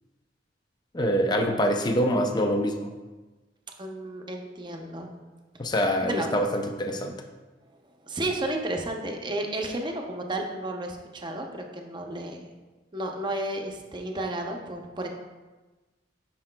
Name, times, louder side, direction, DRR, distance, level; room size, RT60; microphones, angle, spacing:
voice 1, 0.9-2.8 5.6-7.2, equal, 25° left, 4 dB, 0.5 m, -25 dB
voice 2, 3.8-5.3 6.0-6.3 7.6-12.5 12.9-15.1, right 1 dB, 25° right, 2 dB, 0.7 m, -32 dB
9.6 x 5.7 x 2.2 m, 1.2 s
head